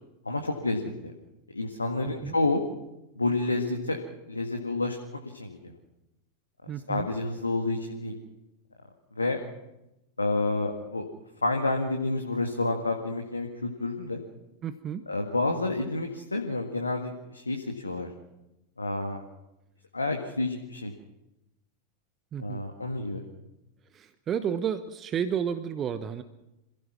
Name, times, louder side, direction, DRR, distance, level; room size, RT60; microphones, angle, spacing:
voice 1, 0.3-0.8 1.5-2.6 3.2-4.0 4.3-5.0 5.3-5.6 6.9-8.1 9.2-9.4 10.2-11.0 11.4-14.2 15.1-18.1 18.8-19.2 19.9-20.9 22.4-23.3, left 2 dB, 80° left, 3 dB, 1.9 m, -29 dB
voice 2, 2.0-2.4 6.7-7.1 14.6-15.0 22.3-22.6 23.9-26.2, right 8 dB, 25° right, 12 dB, 1.0 m, -32 dB
26.5 x 16.5 x 6.1 m, 0.92 s
figure-of-eight pair, 90°, 0 cm